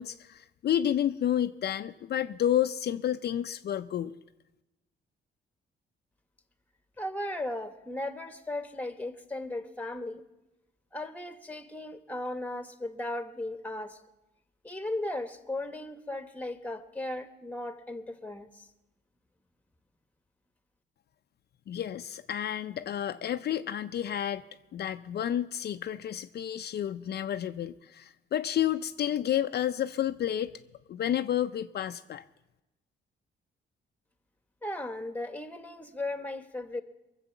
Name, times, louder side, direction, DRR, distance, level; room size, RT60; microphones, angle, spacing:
voice 1, 0.0-4.2 21.7-24.4 24.7-30.5 30.9-32.2, left 10 dB, 55° left, 9 dB, 0.5 m, -30 dB
voice 2, 7.0-10.2 10.9-14.0 14.6-18.6 34.6-36.8, left 1 dB, 5° left, 10 dB, 1.2 m, -36 dB
22.0 x 7.7 x 7.1 m, 0.99 s
cardioid pair, 90°, 20 cm